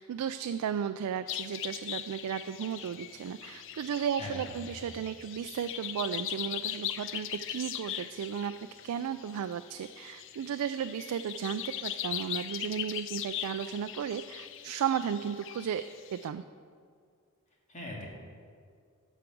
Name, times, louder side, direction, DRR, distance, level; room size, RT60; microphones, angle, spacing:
voice 1, 0.0-8.5 8.8-15.8 16.1-16.4, right 8 dB, 85° right, 10 dB, 0.3 m, -34 dB
sound 1, 1.3-16.3, left 11 dB, 55° left, 0.4 m, -40 dB
voice 2, 4.2-4.8 17.7-18.1, left 1 dB, 35° left, -2 dB, 2.1 m, -41 dB
13.0 x 5.0 x 6.0 m, 2.1 s
head